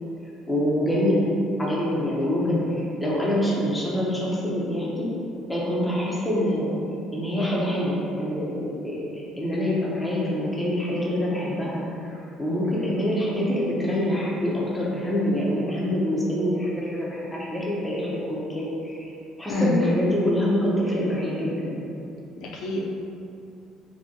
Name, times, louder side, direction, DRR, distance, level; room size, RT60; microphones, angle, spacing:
voice 1, 0.5-1.3 1.6-2.6 3.0-5.1 5.5-6.8 7.1-19.1 19.4-21.8, left 1 dB, 5° left, -6 dB, 0.6 m, -25 dB
voice 2, 19.5-19.8 22.4-22.8, left 1 dB, 60° left, -2 dB, 0.6 m, -26 dB
3.7 x 2.7 x 2.7 m, 2.6 s
cardioid pair, 165°, 0 cm